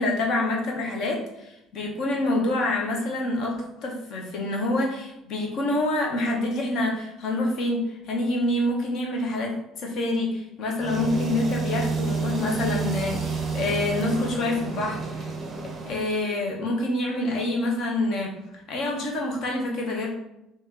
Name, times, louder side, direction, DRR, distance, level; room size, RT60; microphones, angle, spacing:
voice 1, 0.0-15.3 15.8-18.3 18.7-20.1, left 2 dB, 50° left, 0 dB, 0.9 m, -27 dB
sound 1, 10.8-16.1, right 4 dB, 25° right, 0.6 m, -30 dB
3.0 x 3.0 x 3.6 m, 0.86 s
cardioid pair, 165°, 0 cm